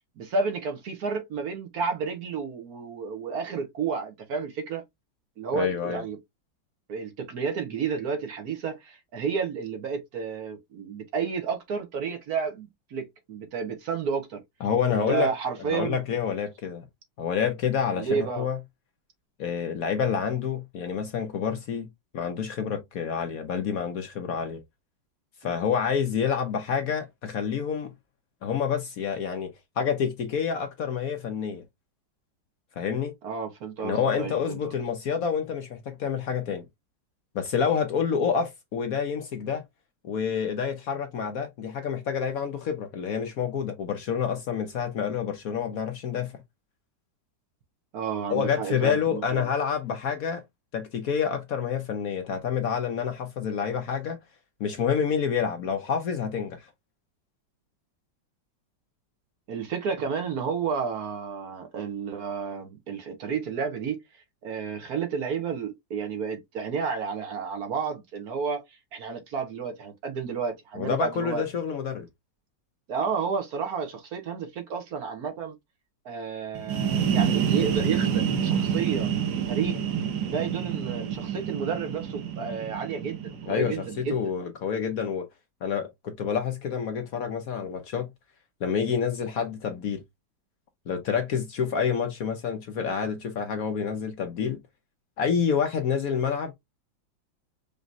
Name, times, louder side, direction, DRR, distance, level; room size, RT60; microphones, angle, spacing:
voice 1, 0.2-4.8 5.4-6.2 6.9-14.4 14.9-16.0 18.0-18.5 25.4-25.5 33.2-34.8 47.9-49.4 59.5-64.0 64.4-68.6 68.9-71.4 72.9-75.6 76.0-79.8 80.2-84.2, right 6 dB, 60° right, 1.2 m, -31 dB
voice 2, 5.5-6.0 14.6-15.3 15.7-16.8 17.2-18.6 19.4-21.9 22.1-24.6 25.4-27.9 28.4-29.5 29.8-31.6 32.8-33.1 33.8-36.6 37.3-39.6 40.0-46.3 48.3-50.4 50.7-54.2 54.6-56.7 70.7-72.1 83.5-85.3 85.6-88.1 88.6-90.0 90.9-94.6 95.2-96.5, left 7 dB, 60° left, 1.0 m, -28 dB
sound 1, 76.5-84.2, right 8 dB, 75° right, 1.5 m, -28 dB
5.2 x 2.9 x 2.5 m
omnidirectional pair, 2.0 m